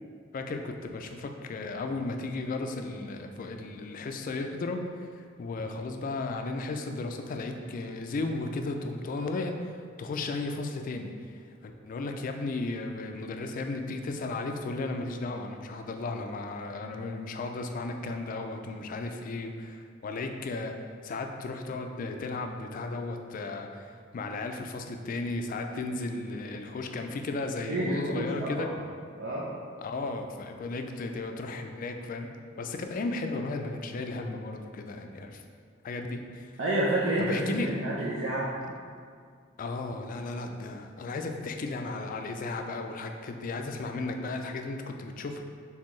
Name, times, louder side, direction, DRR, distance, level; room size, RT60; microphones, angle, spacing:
voice 1, 0.3-20.7 21.0-28.7 29.8-32.3 32.6-35.4 35.8-36.5 37.2-37.7 38.6-38.7 39.6-45.4, left 3 dB, 45° left, 5 dB, 0.3 m, -35 dB
voice 2, 27.7-28.7 29.2-29.5 36.6-38.5, right 1 dB, 70° right, -6 dB, 0.6 m, -29 dB
4.3 x 3.5 x 3.1 m, 2.1 s
head